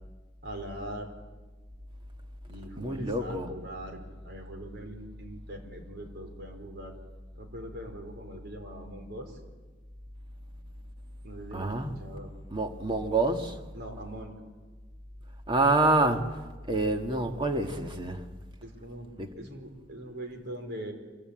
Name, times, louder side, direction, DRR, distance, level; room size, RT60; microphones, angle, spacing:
voice 1, 0.4-1.1 2.5-6.9 7.3-9.4 11.2-12.3 13.7-14.3 18.6-20.9, right 1 dB, 60° right, 4.6 m, -42 dB
voice 2, 2.8-3.5 11.5-12.0 12.5-13.6 15.5-16.4 16.7-18.2 19.2-19.3, right 2 dB, 25° right, 1.9 m, -27 dB
26.0 x 23.0 x 8.9 m
head